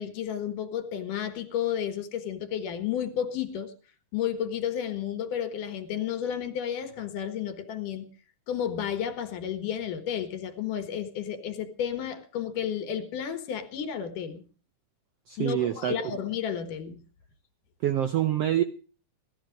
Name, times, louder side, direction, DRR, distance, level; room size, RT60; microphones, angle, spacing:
voice 1, 0.0-3.7 4.1-8.1 8.5-14.4 15.4-17.0, left 9 dB, 80° left, 3.1 m, -32 dB
voice 2, 15.3-16.0 17.8-18.6, right 11 dB, 70° right, 1.5 m, -26 dB
17.5 x 13.0 x 5.2 m
omnidirectional pair, 3.7 m